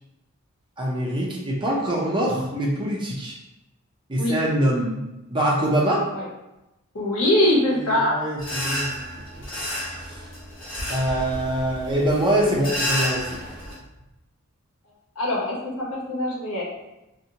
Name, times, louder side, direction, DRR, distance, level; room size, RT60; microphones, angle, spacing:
voice 1, 0.8-3.4 4.1-5.0 5.3-6.0 7.6-9.0 10.0-10.2 10.9-13.4, right 1 dB, 20° right, -3 dB, 0.5 m, -24 dB
voice 2, 6.9-8.2 15.2-16.6, left 1 dB, 80° left, -5 dB, 0.9 m, -22 dB
sound 1, 8.4-13.7, equal, 60° left, 1.0 m, -31 dB
2.7 x 2.1 x 2.7 m, 0.96 s
head